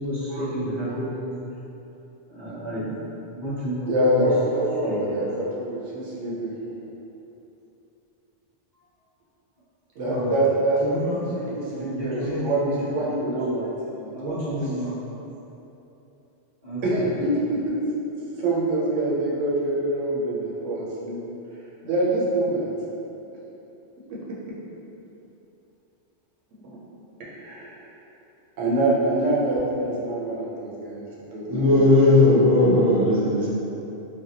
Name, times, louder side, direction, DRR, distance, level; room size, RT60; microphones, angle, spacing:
voice 1, 0.0-1.4 2.3-3.0 3.3-4.3 4.8-5.4 10.0-10.4 10.8-13.7 14.1-15.0 16.6-17.1, equal, 20° right, -16 dB, 1.4 m, -31 dB
voice 2, 3.9-6.5 10.0-11.2 11.5-13.7 13.9-14.5 16.8-17.8 18.4-21.2 21.8-22.7 24.3-24.4 26.6-26.8 27.2-27.9 28.6-31.0 31.3-31.8, right 1 dB, 90° right, -6 dB, 1.1 m, -25 dB
voice 3, 31.5-33.5, left 2 dB, 35° right, -10 dB, 0.3 m, -17 dB
3.3 x 2.2 x 2.7 m, 3.0 s
omnidirectional pair, 1.2 m